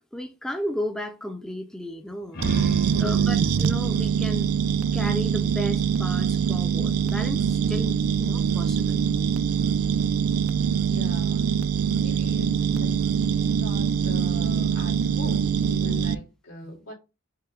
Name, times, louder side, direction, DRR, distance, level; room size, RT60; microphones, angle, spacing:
voice 1, 0.1-4.5 4.9-9.0 16.6-16.7, equal, 5° left, 0.4 m, -34 dB
sound 1, 2.1-5.5, equal, 45° left, 0.9 m, -36 dB
sound 2, 2.4-16.1, right 7 dB, 70° right, 0.3 m, -23 dB
voice 2, 2.9-3.4 8.7-8.8 10.9-11.5 12.0-16.9, left 2 dB, 85° left, 2.1 m, -41 dB
5.5 x 2.1 x 3.7 m
head